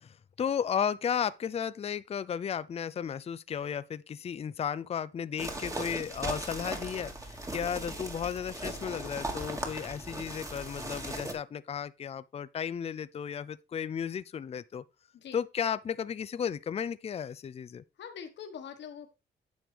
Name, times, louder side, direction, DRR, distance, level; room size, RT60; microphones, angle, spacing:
voice 1, 0.0-14.8 15.3-17.8, left 8 dB, 30° left, 0.5 m, -34 dB
sound 1, 5.4-11.3, right 1 dB, 15° right, 2.0 m, -38 dB
voice 2, 18.0-19.1, left 7 dB, 65° left, 1.4 m, -43 dB
9.3 x 6.3 x 3.4 m
cardioid pair, 90°, 20 cm